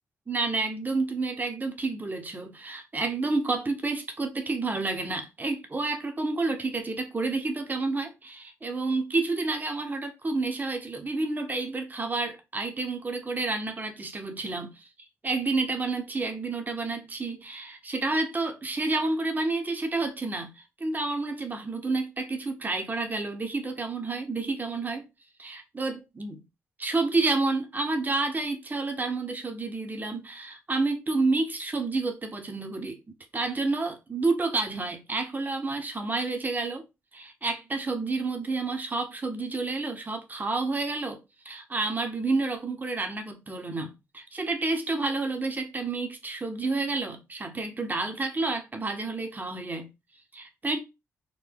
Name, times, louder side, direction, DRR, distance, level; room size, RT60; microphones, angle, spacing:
voice 1, 0.3-14.7 15.2-25.0 25.4-26.4 26.8-33.0 33.3-36.8 37.1-41.2 41.4-49.9 50.3-50.8, right 3 dB, 30° right, 1.0 m, -29 dB
3.8 x 2.1 x 3.6 m
cardioid pair, 70°, 6 cm